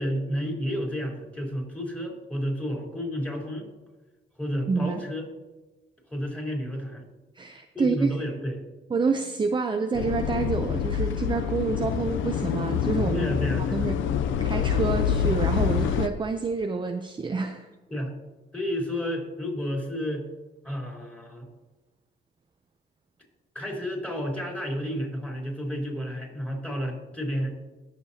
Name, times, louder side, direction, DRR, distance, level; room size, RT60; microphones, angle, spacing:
voice 1, 0.0-3.7 4.4-5.3 6.1-7.0 7.7-8.6 13.1-13.9 17.9-18.1 18.5-20.3 20.6-21.5 23.6-27.5, equal, 5° left, -1 dB, 3.7 m, -31 dB
voice 2, 4.7-5.0 7.4-8.1 8.9-13.3 13.7-14.0 14.4-17.7, right 4 dB, 25° right, 6 dB, 0.6 m, -28 dB
sound 1, 9.9-16.1, left 8 dB, 80° left, 0.6 m, -26 dB
20.0 x 6.7 x 2.8 m, 1.2 s
cardioid pair, 90°, 20 cm